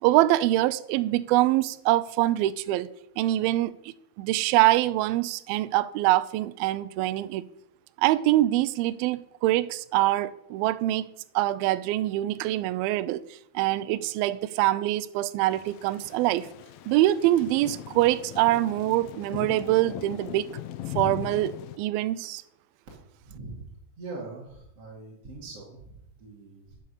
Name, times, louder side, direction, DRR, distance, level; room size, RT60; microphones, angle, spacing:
voice 1, 0.0-2.9 3.2-3.7 4.2-7.4 8.0-11.1 11.4-13.2 13.5-16.5 16.9-20.6 21.0-22.4, right 15 dB, 90° right, 2.1 m, -24 dB
Thunder / Rain, 15.5-21.8, left 13 dB, 85° left, 2.1 m, -39 dB
voice 2, 23.2-23.7 24.0-26.8, right 3 dB, 40° right, 3.0 m, -42 dB
12.5 x 7.1 x 6.6 m
omnidirectional pair, 4.9 m